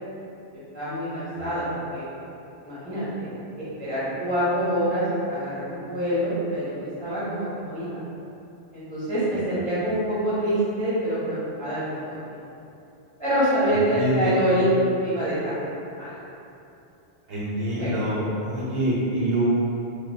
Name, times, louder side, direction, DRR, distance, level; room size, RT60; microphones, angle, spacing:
voice 1, 0.7-1.7 1.9-2.1 2.6-3.3 3.6-8.0 8.7-12.2 13.2-14.6 15.0-16.1 17.7-17.9, equal, 10° left, -12 dB, 0.6 m, -26 dB
voice 2, 13.9-14.3 17.3-19.5, equal, 65° right, -9 dB, 1.0 m, -26 dB
3.0 x 2.3 x 2.2 m, 2.8 s
omnidirectional pair, 1.1 m